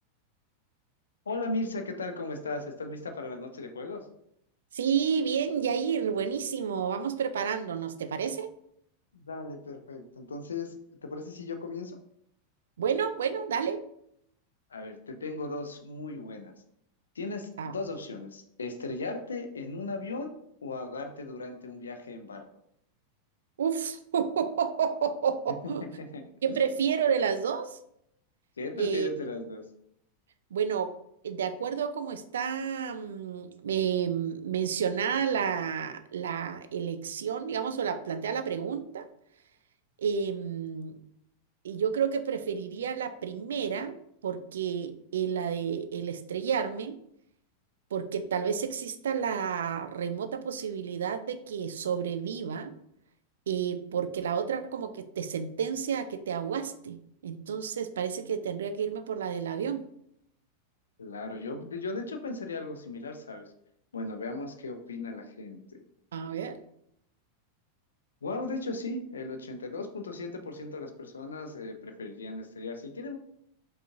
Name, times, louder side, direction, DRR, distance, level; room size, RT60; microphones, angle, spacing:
voice 1, 1.3-4.1 9.1-12.0 14.7-16.5 17.2-20.3 20.6-22.5 25.6-26.2 28.6-29.6 61.0-63.5 63.9-65.8 68.2-73.2, left 3 dB, 70° left, 6 dB, 0.5 m, -37 dB
voice 2, 4.7-8.5 12.8-13.8 17.6-17.7 23.6-25.8 26.4-27.8 28.8-29.1 30.5-30.9 31.2-39.1 40.0-41.0 41.6-44.0 44.2-47.0 47.9-52.7 53.5-57.0 57.2-59.8 66.1-66.6, right 7 dB, 65° right, 9 dB, 0.3 m, -30 dB
5.0 x 2.4 x 2.7 m, 0.73 s
figure-of-eight pair, 90°, 0 cm